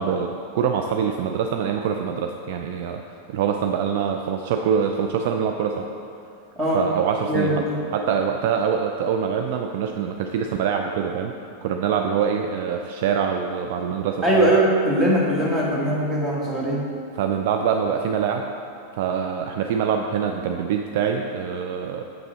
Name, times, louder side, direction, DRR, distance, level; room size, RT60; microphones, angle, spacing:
voice 1, 0.0-5.9 6.7-7.6 7.9-11.3 11.6-14.4 17.2-18.5 18.9-22.0, right 7 dB, 50° right, 4 dB, 0.3 m, -24 dB
voice 2, 7.3-7.8 14.2-16.8, right 1 dB, 20° right, -4 dB, 1.7 m, -21 dB
7.3 x 5.9 x 4.1 m, 2.6 s
figure-of-eight pair, 90°, 0 cm